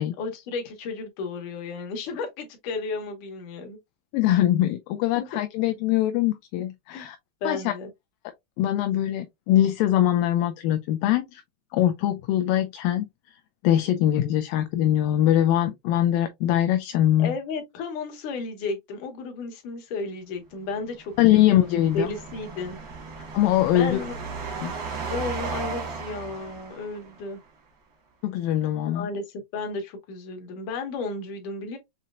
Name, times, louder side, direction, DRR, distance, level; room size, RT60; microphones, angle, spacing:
voice 1, 0.2-3.8 5.2-5.3 6.9-7.1 7.4-7.9 17.2-22.8 23.7-24.2 25.1-27.4 28.9-31.8, left 4 dB, 65° left, 2.5 m, -33 dB
voice 2, 4.1-7.2 7.4-7.7 8.6-11.4 11.7-13.1 13.6-17.3 21.2-22.1 23.3-24.0 24.6-24.7 28.2-29.1, left 12 dB, 80° left, 2.1 m, -22 dB
sound 1, 21.0-27.3, right 5 dB, 65° right, 1.1 m, -36 dB
6.2 x 2.8 x 2.4 m
omnidirectional pair, 4.2 m